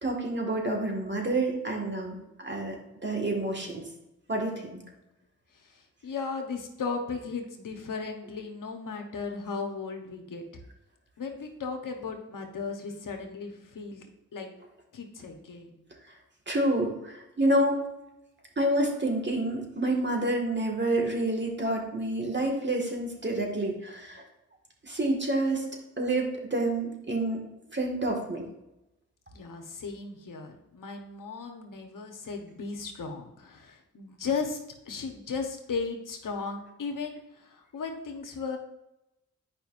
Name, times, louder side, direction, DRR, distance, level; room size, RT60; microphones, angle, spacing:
voice 1, 0.0-2.8 3.0-3.8 4.3-4.8 16.5-17.8 18.6-24.2 24.8-25.6 26.0-27.4 27.7-28.4, right 1 dB, 35° right, 0 dB, 1.8 m, -28 dB
voice 2, 5.7-10.4 11.2-14.5 14.9-15.7 29.3-34.6 34.8-38.6, left 4 dB, 75° left, 3 dB, 1.1 m, -36 dB
8.9 x 5.2 x 2.6 m, 0.89 s
cardioid pair, 50°, 32 cm